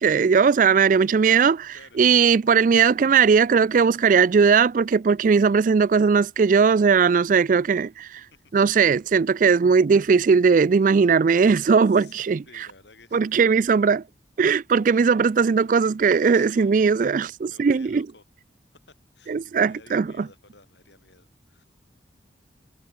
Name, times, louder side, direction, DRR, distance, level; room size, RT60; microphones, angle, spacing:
voice 1, 0.0-8.2 8.5-12.4 13.1-14.0 14.4-18.1 19.3-20.3, right 5 dB, 45° right, 0.3 m, -19 dB
voice 2, 11.9-13.4 16.0-16.7 17.5-18.2 18.9-21.6, left 3 dB, 75° left, 5.1 m, -52 dB
head